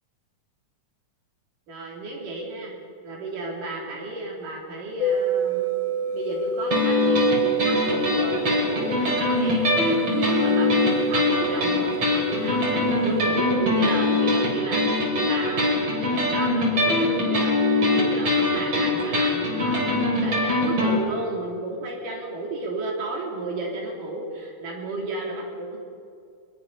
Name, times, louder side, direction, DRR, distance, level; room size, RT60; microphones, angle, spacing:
voice 1, 1.7-2.7 3.0-5.7 6.1-7.3 7.6-25.8, right 2 dB, 80° right, -2 dB, 5.1 m, -33 dB
sound 1, 5.0-13.5, right 4 dB, 70° left, 2.8 m, -28 dB
sound 2, 6.7-21.0, left 2 dB, 45° right, 5.4 m, -23 dB
24.0 x 21.0 x 5.7 m, 2.3 s
omnidirectional pair, 3.7 m